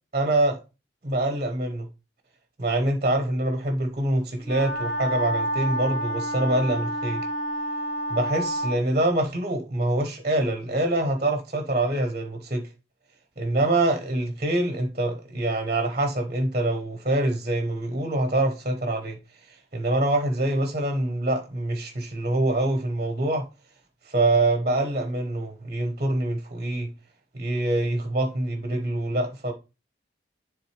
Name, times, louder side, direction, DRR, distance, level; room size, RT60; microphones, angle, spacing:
voice 1, 0.1-0.6 1.0-1.9 2.6-7.2 8.1-12.7 13.4-23.5 24.0-26.9 27.3-29.5, right 1 dB, 35° right, 1.0 m, -25 dB
Wind instrument woodwind instrument, 4.4-8.8, right 1 dB, 85° left, 1.8 m, -29 dB
10.5 x 3.6 x 3.3 m
head